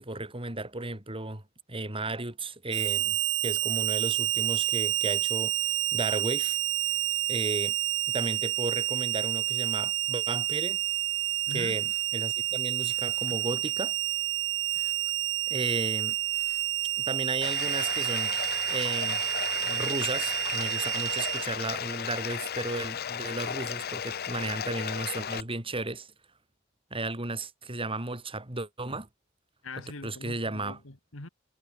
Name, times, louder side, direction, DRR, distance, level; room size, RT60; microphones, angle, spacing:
voice 1, 0.0-1.4 1.7-3.2 3.4-6.6 6.8-7.0 7.3-7.7 8.1-10.8 11.5-14.0 14.8-14.9 15.5-16.2 17.0-18.4 18.7-19.2 19.6-26.1 26.9-29.1 30.0-30.8, right 2 dB, 25° right, 3.5 m, -34 dB
Harmonica, 2.7-21.4, right 14 dB, 65° right, 2.1 m, -29 dB
voice 2, 11.5-11.8 13.3-13.4 29.6-31.3, left 2 dB, 80° left, 2.4 m, -42 dB
Bathtub (filling or washing), 17.4-25.4, left 8 dB, 50° left, 0.7 m, -35 dB
head